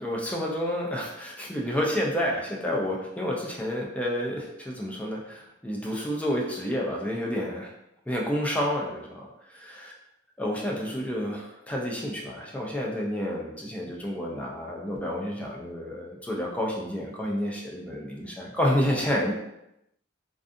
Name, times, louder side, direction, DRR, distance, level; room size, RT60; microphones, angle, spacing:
voice 1, 0.0-7.7 8.1-9.9 10.4-19.3, equal, 5° left, -2 dB, 0.4 m, -30 dB
2.5 x 2.3 x 2.5 m, 0.83 s
head